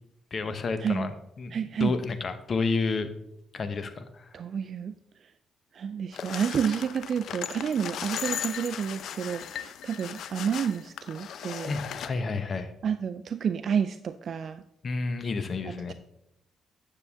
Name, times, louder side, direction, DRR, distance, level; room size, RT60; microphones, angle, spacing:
voice 1, 0.3-1.1 1.4-3.1 3.5-4.3 11.7-12.7 14.8-15.9, left 4 dB, 45° left, 10 dB, 0.9 m, -30 dB
voice 2, 1.5-2.0 4.3-4.9 5.2-5.3 5.7-11.8 12.8-14.6 15.6-15.9, right 7 dB, 55° right, 11 dB, 0.4 m, -30 dB
sound 1, 6.1-12.1, left 9 dB, 70° left, 0.5 m, -37 dB
9.6 x 6.8 x 3.5 m, 0.79 s
cardioid pair, 90°, 0 cm